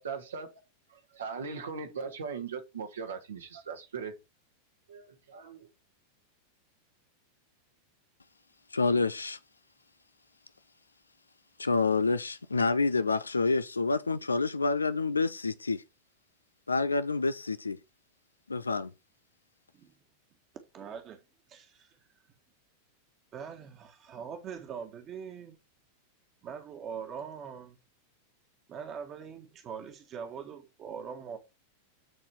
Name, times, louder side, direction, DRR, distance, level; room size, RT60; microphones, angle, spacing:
voice 1, 0.0-0.6 0.9-4.2 4.9-5.7, right 5 dB, 70° right, 1.6 m, -39 dB
voice 2, 8.7-9.4 11.6-15.8 16.7-17.8 18.5-18.9, left 3 dB, 80° left, 0.5 m, -28 dB
voice 3, 20.7-21.2 21.5-22.0 23.3-25.6 26.4-27.8 28.7-31.4, right 7 dB, 30° right, 1.5 m, -42 dB
9.7 x 4.2 x 4.6 m
figure-of-eight pair, 90°, 0 cm